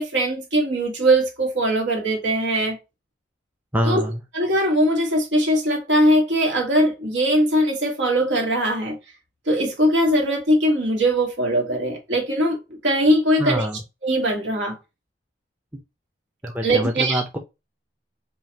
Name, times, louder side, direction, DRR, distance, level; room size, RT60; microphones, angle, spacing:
voice 1, 0.0-2.8 3.8-4.0 4.3-9.0 9.5-13.7 14.0-14.8 16.6-17.2, right 1 dB, 80° right, 1.7 m, -20 dB
voice 2, 3.7-4.2 13.4-13.8 16.4-17.4, equal, 10° right, 0.6 m, -24 dB
5.4 x 2.4 x 2.8 m
head